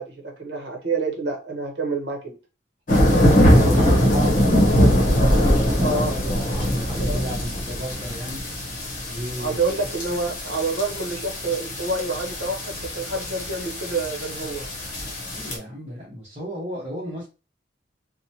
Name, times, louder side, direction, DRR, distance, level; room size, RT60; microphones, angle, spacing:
voice 1, 0.0-2.4 5.8-6.2 7.0-7.2 9.4-14.7, right 3 dB, 65° right, 0 dB, 0.9 m, -28 dB
sound 1, 2.9-15.6, equal, 45° left, 0.9 m, -22 dB
voice 2, 3.1-8.5 9.1-9.6 15.3-17.3, equal, 35° right, -7 dB, 1.0 m, -33 dB
2.8 x 2.2 x 2.7 m, 0.31 s
head